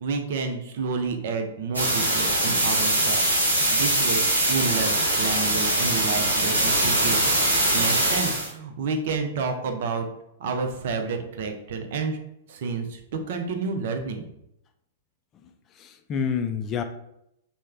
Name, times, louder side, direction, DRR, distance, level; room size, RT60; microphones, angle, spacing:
voice 1, 0.0-3.2 3.5-4.2 4.5-7.4 7.7-10.1 10.4-12.2 12.5-13.0 13.3-14.2, right 4 dB, 55° right, 5 dB, 0.5 m, -29 dB
sound 1, 1.7-8.5, right 1 dB, 80° right, 0.8 m, -22 dB
voice 2, 15.8-16.8, left 7 dB, 30° left, 7 dB, 0.3 m, -29 dB
3.2 x 2.1 x 3.5 m, 0.79 s
figure-of-eight pair, 100°, 0 cm